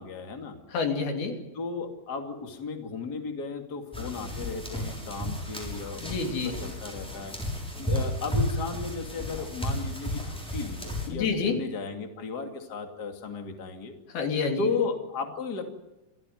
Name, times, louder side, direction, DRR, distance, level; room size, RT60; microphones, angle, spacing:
voice 1, 0.0-0.6 1.5-7.3 7.8-13.9 14.6-15.7, left 4 dB, 30° left, 4 dB, 2.6 m, -35 dB
voice 2, 0.7-1.4 6.0-6.6 11.1-11.6 14.1-14.7, left 5 dB, 90° left, 4 dB, 4.9 m, -28 dB
sound 1, 3.9-11.1, equal, ahead, 6.3 m, -33 dB
27.0 x 16.0 x 9.4 m, 1.0 s
omnidirectional pair, 4.3 m